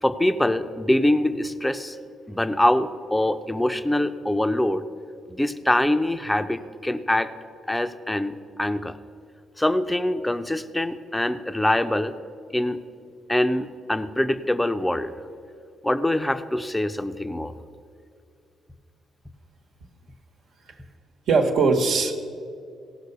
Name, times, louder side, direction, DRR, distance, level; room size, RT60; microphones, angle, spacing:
voice 1, 0.0-2.0 2.3-4.8 5.3-7.3 7.7-8.9 9.6-12.1 12.5-12.8 13.3-15.1 15.8-17.5, left 1 dB, 10° left, 11 dB, 0.6 m, -24 dB
voice 2, 21.3-22.1, right 4 dB, 75° right, 2 dB, 1.2 m, -20 dB
17.0 x 5.8 x 6.7 m, 2.4 s
cardioid pair, 90°, 0 cm